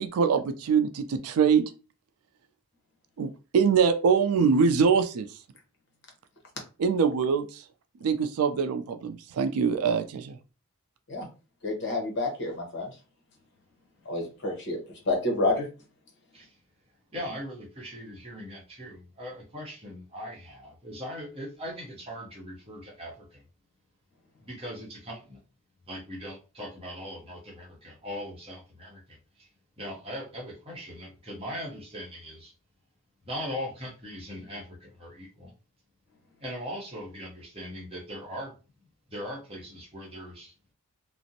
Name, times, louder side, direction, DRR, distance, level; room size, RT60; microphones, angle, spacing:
voice 1, 0.0-1.6 3.2-5.3 6.8-7.6 8.0-10.4, right 6 dB, 75° right, 0.3 m, -24 dB
voice 2, 11.6-12.9 14.0-14.8 15.1-15.7, left 2 dB, 50° left, 0.8 m, -28 dB
voice 3, 17.1-23.4 24.4-25.4 25.9-29.5 29.8-32.5 33.2-35.5 36.4-38.5 38.8-40.5, equal, 25° right, 0.8 m, -40 dB
2.5 x 2.0 x 2.7 m
head